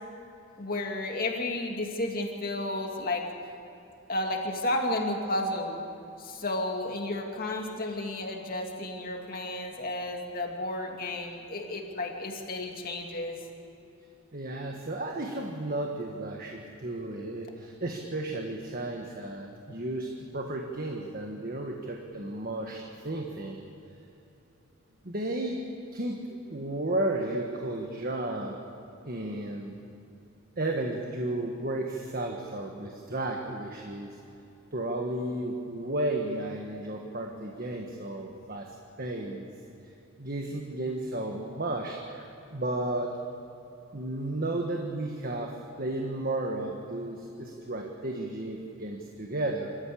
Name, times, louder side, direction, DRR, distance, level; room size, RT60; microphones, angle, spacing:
voice 1, 0.6-3.3 4.1-5.8 6.2-13.4, left 1 dB, 45° left, 2 dB, 2.5 m, -32 dB
voice 2, 14.3-23.6 25.0-25.6 25.9-26.2 26.5-28.6 29.0-29.7 30.6-34.1 34.7-38.7 39.0-39.5 40.2-43.2 43.9-49.7, right 1 dB, 45° right, 1 dB, 1.5 m, -33 dB
26.0 x 13.5 x 8.6 m, 2.8 s
head